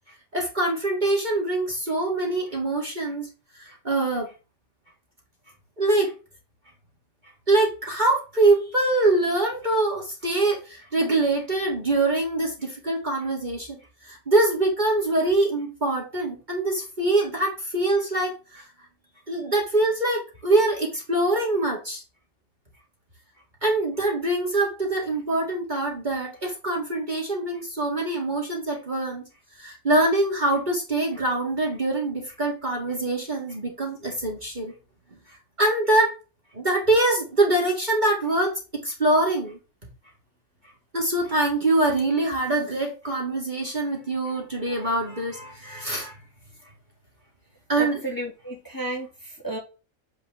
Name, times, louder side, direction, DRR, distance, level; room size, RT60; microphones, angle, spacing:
voice 1, 0.3-3.3 3.6-4.3 5.8-6.1 7.5-13.8 14.0-18.7 19.3-22.0 23.6-29.3 29.6-34.7 35.6-36.1 36.5-39.6 40.9-46.2 47.7-48.0, right 2 dB, 30° right, 2.2 m, -24 dB
voice 2, 47.8-49.6, right 1 dB, 15° left, 2.7 m, -33 dB
8.3 x 4.7 x 3.7 m
omnidirectional pair, 1.5 m